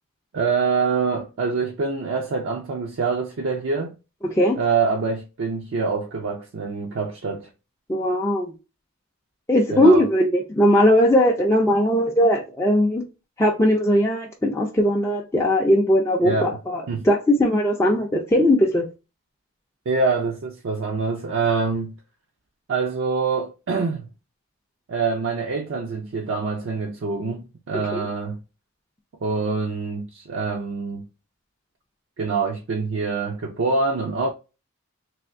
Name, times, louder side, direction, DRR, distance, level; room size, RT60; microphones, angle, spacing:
voice 1, 0.3-3.9 4.6-7.5 9.7-10.0 16.2-16.6 16.9-17.1 19.9-21.9 22.7-24.1 24.9-28.4 29.2-31.1 32.2-34.3, right 4 dB, 60° right, 0.4 m, -25 dB
voice 2, 7.9-8.5 9.5-13.1 13.4-18.8 27.9-28.1, equal, 10° left, 0.4 m, -19 dB
3.3 x 2.5 x 2.6 m
head